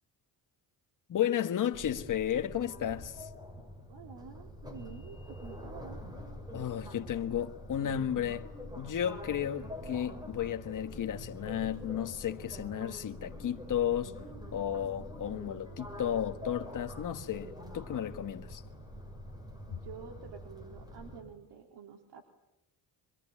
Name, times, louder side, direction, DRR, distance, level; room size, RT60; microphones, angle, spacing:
voice 1, 1.1-3.3 6.5-8.5 8.8-14.1 14.5-18.6, left 10 dB, 45° left, 1.6 m, -33 dB
sound 1, 1.7-21.2, left 1 dB, 10° right, 6.9 m, -45 dB
voice 2, 3.9-6.0 19.7-22.2, right 7 dB, 70° right, 3.3 m, -49 dB
25.5 x 21.5 x 9.9 m
cardioid pair, 115°, 42 cm